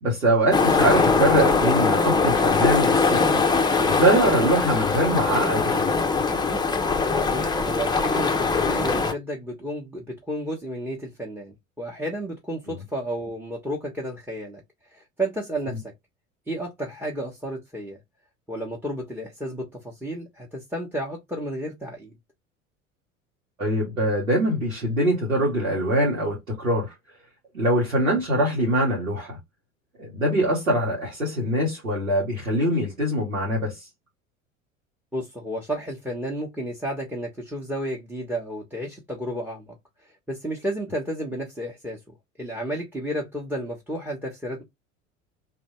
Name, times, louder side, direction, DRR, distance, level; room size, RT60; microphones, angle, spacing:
voice 1, 0.0-3.4 3.8-5.9 23.6-26.9 27.5-29.4 30.0-33.8, right 1 dB, 90° right, 2.0 m, -23 dB
sound 1, 0.5-9.1, left 4 dB, 10° left, 0.8 m, -21 dB
voice 2, 7.3-14.6 14.9-15.8 16.5-18.0 18.5-22.1 35.1-39.7 40.3-44.6, right 1 dB, 5° right, 1.3 m, -32 dB
3.3 x 3.2 x 3.1 m
figure-of-eight pair, 75°, 39 cm